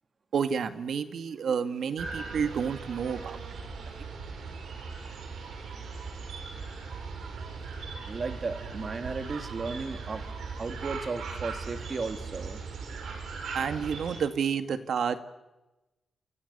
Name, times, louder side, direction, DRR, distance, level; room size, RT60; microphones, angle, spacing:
voice 1, 0.3-3.4 4.0-4.1 13.5-15.2, right 7 dB, 70° right, 9 dB, 2.1 m, -30 dB
sound 1, 2.0-14.2, right 4 dB, 90° right, 6.5 m, -39 dB
voice 2, 8.1-10.2 10.6-12.6, right 4 dB, 35° right, 8 dB, 2.3 m, -35 dB
29.0 x 29.0 x 6.9 m, 1.0 s
wide cardioid pair, 170°, 0 cm